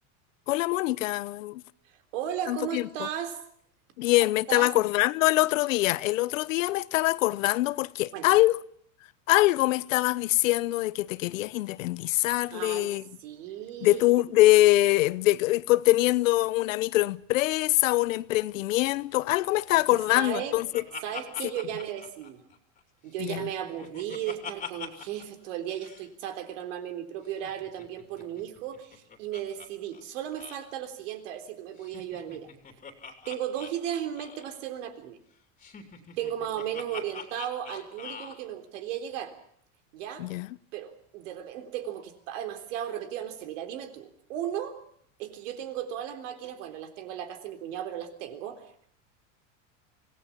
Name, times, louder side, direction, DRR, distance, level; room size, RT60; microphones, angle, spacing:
voice 1, 0.5-1.6 2.5-3.1 4.0-8.6 9.3-13.0 13.8-20.7 23.2-23.5 40.2-40.5, left 18 dB, 90° left, 0.8 m, -24 dB
voice 2, 2.1-3.4 4.2-4.7 8.1-8.4 12.5-14.0 19.7-19.8 20.2-20.6 21.0-22.4 23.0-32.5 33.3-35.2 36.2-39.3 39.9-40.3 40.7-44.8 45.2-48.6, right 10 dB, 70° right, 3.7 m, -35 dB
Laughter, 19.9-22.8 23.2-25.3 25.5-25.6 25.8-26.1 27.3-29.7 29.9-30.0 30.3-30.6 31.8-34.6 35.6-38.4, left 6 dB, 20° left, 3.1 m, -43 dB
25.5 x 18.0 x 7.4 m
supercardioid pair, 145°, 38 cm